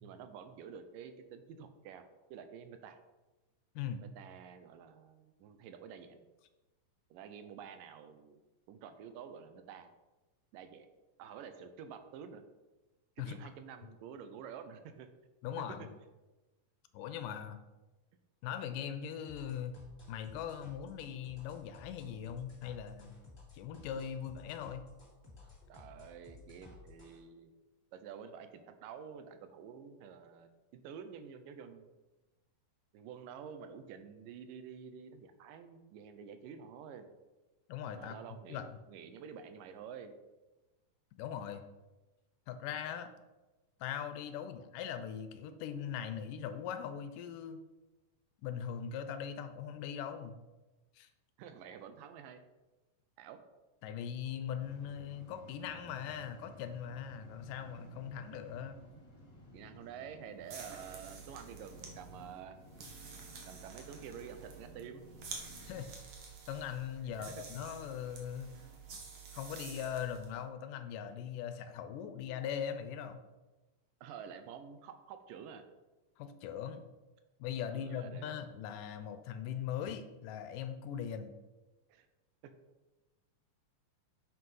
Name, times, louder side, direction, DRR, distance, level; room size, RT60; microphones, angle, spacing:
voice 1, 0.0-2.0 2.3-3.0 4.2-6.2 7.1-8.4 8.7-9.9 10.5-10.9 11.2-12.4 13.2-15.1 15.8-15.9 25.7-27.5 27.9-31.9 32.9-37.1 38.0-40.1 51.4-52.4 53.2-53.4 59.5-62.6 63.5-65.1 67.2-67.3 74.0-75.6 77.7-78.3 81.9-82.1, right 7 dB, 85° right, 8 dB, 2.4 m, -49 dB
voice 2, 15.4-15.9 16.9-17.6 18.4-19.8 20.1-23.2 23.5-24.8 37.7-38.2 38.5-38.7 41.2-41.6 42.5-43.1 43.8-47.6 48.4-50.4 51.0-51.1 53.8-58.8 65.7-65.9 66.5-68.5 69.3-73.2 76.2-76.8 77.4-81.3, left 8 dB, 80° left, 9 dB, 2.2 m, -40 dB
sound 1, 19.2-27.2, left 3 dB, 20° left, 1.9 m, -55 dB
sound 2, 54.6-65.8, left 1 dB, 40° left, 1.8 m, -56 dB
sound 3, 60.4-70.3, right 5 dB, 55° right, 1.7 m, -50 dB
7.4 x 6.2 x 5.5 m, 1.1 s
omnidirectional pair, 3.8 m